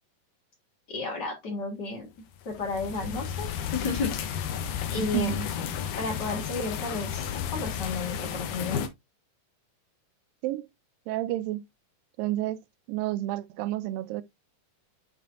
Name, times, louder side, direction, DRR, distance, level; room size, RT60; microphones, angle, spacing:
voice 1, 0.9-2.1 2.4-4.4 4.9-5.5 6.0-8.8, left 3 dB, 45° left, 1.5 m, -33 dB
sound 1, 2.3-8.9, left 8 dB, 70° left, 2.2 m, -33 dB
voice 2, 5.0-5.4 10.4-10.7 11.1-11.6 12.2-12.6 12.9-14.2, right 15 dB, 90° right, 2.3 m, -30 dB
8.9 x 4.2 x 2.5 m
omnidirectional pair, 3.9 m